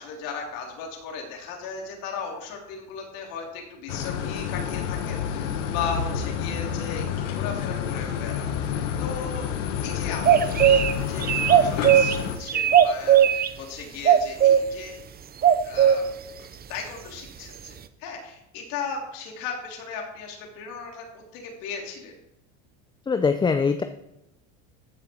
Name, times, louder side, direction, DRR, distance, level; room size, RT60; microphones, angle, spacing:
voice 1, 0.0-9.5 9.8-15.0 15.6-16.1 16.4-22.1, left 5 dB, 65° left, 1 dB, 3.3 m, -36 dB
sound 1, 3.9-12.4, left 8 dB, 85° left, 1.4 m, -29 dB
sound 2, 10.2-10.9 11.2-12.2 12.5-13.5 14.0-14.6 15.4-16.0, right 10 dB, 25° right, 0.7 m, -17 dB
voice 2, 23.1-23.8, left 5 dB, 15° left, 8 dB, 0.5 m, -22 dB
14.5 x 6.8 x 4.4 m, 0.87 s
supercardioid pair, 110°, 36 cm